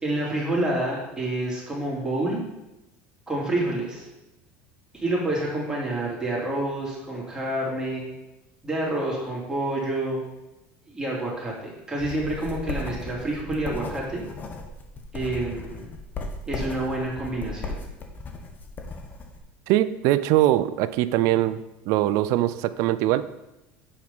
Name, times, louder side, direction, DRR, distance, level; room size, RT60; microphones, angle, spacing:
voice 1, 0.0-2.4 3.3-4.1 4.9-8.0 8.6-10.2 10.9-14.2 15.1-15.8 16.5-17.8, right 1 dB, 10° right, -4 dB, 2.7 m, -28 dB
sound 1, 12.0-19.4, left 3 dB, 30° left, 1.1 m, -36 dB
voice 2, 19.7-21.6 21.9-23.2, right 14 dB, 65° right, 14 dB, 0.4 m, -22 dB
7.3 x 4.7 x 5.5 m, 0.95 s
supercardioid pair, 125°, 6 cm